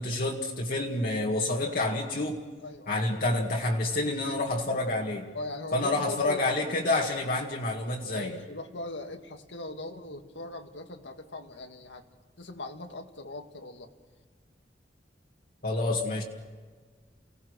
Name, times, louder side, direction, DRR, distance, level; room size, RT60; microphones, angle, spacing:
voice 1, 0.0-2.4 2.9-5.3 5.7-8.4 15.6-16.2, left 2 dB, 55° left, -1 dB, 2.0 m, -28 dB
voice 2, 5.3-6.4 8.2-12.0 12.4-13.9, left 2 dB, 90° left, 5 dB, 1.9 m, -40 dB
29.5 x 18.0 x 6.4 m, 1.5 s
head